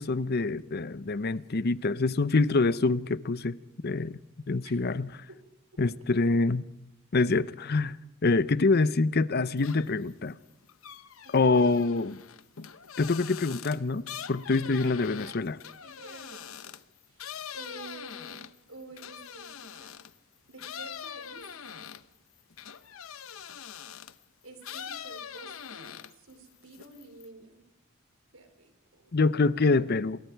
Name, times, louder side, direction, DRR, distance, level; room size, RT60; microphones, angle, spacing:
voice 1, 0.0-3.6 3.8-4.2 4.5-5.1 5.8-6.6 7.1-10.4 11.3-12.2 13.0-15.6 29.1-30.2, left 3 dB, 50° left, 0.7 m, -25 dB
sound 1, 9.6-10.1 10.4-20.2 20.6-24.2 24.6-26.3 26.6-27.3, left 8 dB, 90° left, 0.9 m, -43 dB
voice 2, 11.2-11.7 14.8-15.4 15.8-16.6 17.1-18.4 18.7-20.0 20.5-21.4 24.4-27.6 28.3-29.2, right 2 dB, 80° right, 4.0 m, -50 dB
28.0 x 21.5 x 4.6 m
head